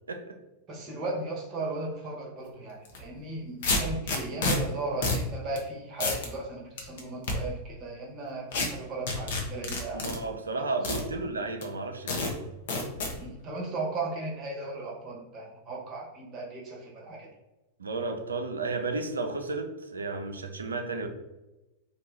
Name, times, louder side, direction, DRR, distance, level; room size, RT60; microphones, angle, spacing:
voice 1, 0.7-10.1 10.9-11.0 13.2-17.3, right 2 dB, 35° right, -2 dB, 1.0 m, -36 dB
sound 1, 2.8-3.0 3.6-4.6 5.0-5.2 5.6-5.7 6.0-6.3 6.8-7.3 8.5-8.7 9.1-10.2 10.8-11.0 11.6-11.7 12.1-12.3 12.7-13.1, left 3 dB, 60° left, 0.7 m, -28 dB
voice 2, 9.9-12.4 17.8-21.1, right 3 dB, 80° right, 5 dB, 0.4 m, -33 dB
2.8 x 2.2 x 3.2 m, 1.0 s
figure-of-eight pair, 95°, 0 cm